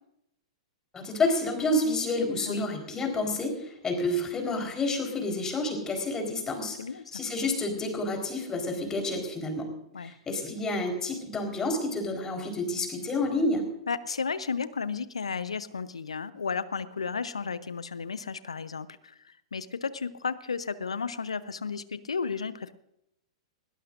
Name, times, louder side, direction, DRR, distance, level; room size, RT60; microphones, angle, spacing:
voice 1, 0.9-6.8 7.1-9.7 10.0-13.6, left 2 dB, 20° left, 3 dB, 4.1 m, -29 dB
voice 2, 6.8-7.2 9.9-10.1 13.9-22.7, left 5 dB, 75° left, 16 dB, 0.7 m, -33 dB
20.5 x 18.0 x 2.6 m, 0.80 s
figure-of-eight pair, 105°, 3 cm